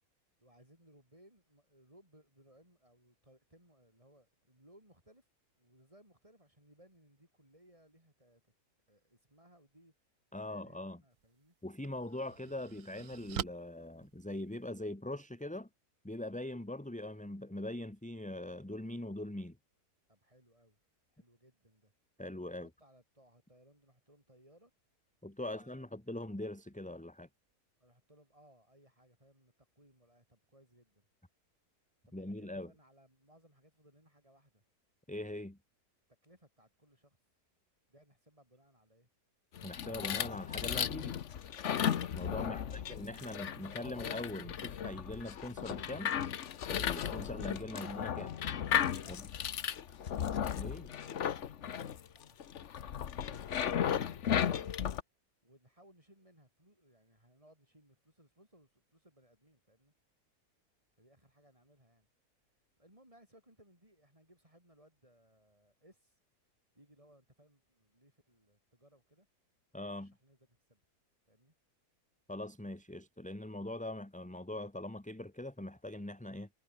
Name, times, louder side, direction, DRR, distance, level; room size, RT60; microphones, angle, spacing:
voice 1, 0.4-5.3 5.6-8.4 8.9-9.9 10.3-11.6 20.1-20.8 21.1-21.9 22.5-24.7 25.4-25.9 27.8-31.1 32.1-34.6 36.2-37.2 37.9-39.1 42.5-42.8 49.0-49.2 49.9-52.4 52.7-53.6 53.9-54.7 55.4-59.9 61.0-62.1 62.8-66.2 66.7-69.3 69.8-70.8 71.3-71.5, right 1 dB, 20° right, 7.2 m, -64 dB
voice 2, 10.3-11.0 11.6-15.7 16.0-19.6 22.2-22.7 25.2-27.3 32.1-32.7 35.1-35.6 39.6-41.2 42.1-46.1 46.7-48.3 49.1-49.2 50.6-50.9 69.7-70.1 72.3-76.5, left 1 dB, 5° left, 1.4 m, -42 dB
sound 1, 11.1-11.3 11.8-14.9, right 10 dB, 60° right, 1.2 m, -44 dB
sound 2, 39.6-55.0, left 9 dB, 55° left, 1.2 m, -35 dB
omnidirectional pair, 1.7 m